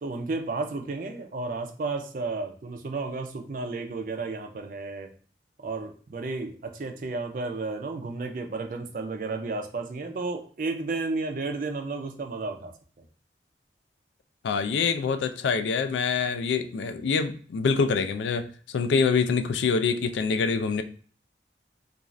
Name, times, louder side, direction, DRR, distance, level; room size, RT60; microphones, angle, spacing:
voice 1, 0.0-5.1 5.6-12.7, right 3 dB, 50° right, 5 dB, 0.4 m, -32 dB
voice 2, 14.4-20.8, left 5 dB, 85° left, 9 dB, 0.3 m, -25 dB
2.5 x 2.4 x 3.0 m, 0.43 s
head